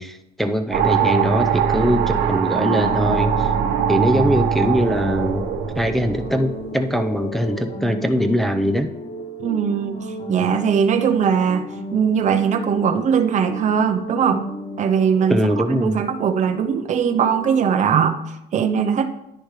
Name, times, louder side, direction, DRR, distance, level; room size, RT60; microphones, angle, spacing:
voice 1, 0.0-3.5 3.9-5.4 5.8-8.9 15.3-16.0, equal, ahead, 5 dB, 0.7 m, -21 dB
sound 1, 0.7-7.2, right 7 dB, 75° right, 1.1 m, -22 dB
sound 2, 2.5-18.0, equal, 35° left, 1.8 m, -35 dB
voice 2, 9.4-11.6 11.9-14.4 14.8-19.1, right 7 dB, 45° right, 7 dB, 0.7 m, -20 dB
10.5 x 9.9 x 3.2 m, 0.86 s
cardioid pair, 110°, 17 cm